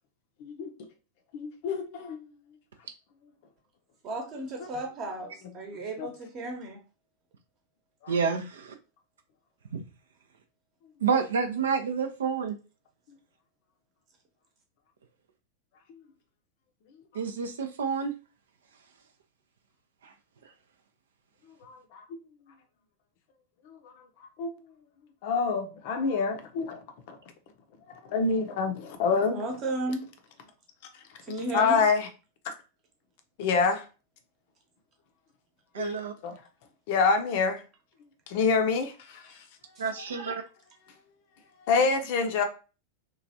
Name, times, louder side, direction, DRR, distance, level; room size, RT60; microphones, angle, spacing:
voice 1, 0.4-0.7 1.3-2.2 6.0-6.1 8.0-8.1 21.6-22.0 23.7-23.8 24.4-24.5 25.2-26.8 27.1-27.2 27.9-29.4 31.5-32.1 32.4-32.5 33.4-33.8 35.8-36.0 36.2-36.4 36.9-37.6 38.3-39.4 41.7-42.4, left 4 dB, 50° left, 0.5 m, -26 dB
voice 2, 4.0-6.8 29.3-30.0 31.3-31.8, right 2 dB, 35° right, 0.9 m, -34 dB
voice 3, 8.1-8.7 9.7-9.8 11.0-12.6 17.1-18.1 20.0-20.1 35.7-36.1 39.8-40.4, right 5 dB, 65° right, 0.4 m, -29 dB
3.0 x 2.4 x 2.6 m
figure-of-eight pair, 90°, 0 cm